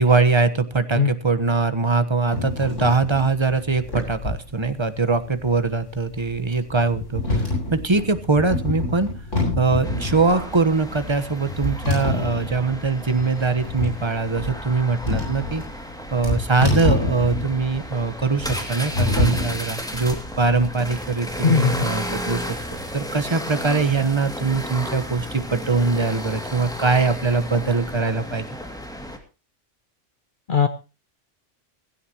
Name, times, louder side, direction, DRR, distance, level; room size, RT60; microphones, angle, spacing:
voice 1, 0.0-7.4 7.7-9.1 9.6-15.6 16.1-22.6 22.9-28.5, right 4 dB, 25° right, 11 dB, 1.2 m, -22 dB
sound 1, 2.3-20.6, left 2 dB, 80° left, 7.3 m, -27 dB
sound 2, 9.8-29.2, equal, 5° left, 2.4 m, -34 dB
voice 2, 21.4-21.9 30.5-30.7, left 6 dB, 50° left, 11 dB, 0.9 m, -18 dB
16.5 x 16.0 x 3.0 m, 0.31 s
omnidirectional pair, 1.2 m